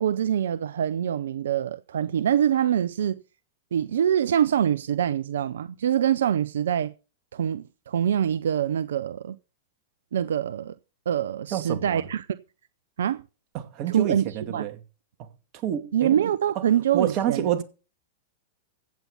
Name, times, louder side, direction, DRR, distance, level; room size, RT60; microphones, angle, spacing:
voice 1, 0.0-3.2 3.7-6.9 7.3-9.4 10.1-10.8 11.1-12.3 13.0-13.2 13.9-14.7 15.9-17.5, right 9 dB, 80° right, 0.6 m, -24 dB
voice 2, 11.5-12.0 13.5-14.8 15.2-15.3 15.6-16.1 16.6-16.7 16.9-17.6, right 10 dB, 45° right, 2.4 m, -28 dB
15.5 x 8.4 x 5.5 m
hypercardioid pair, 110°, 0 cm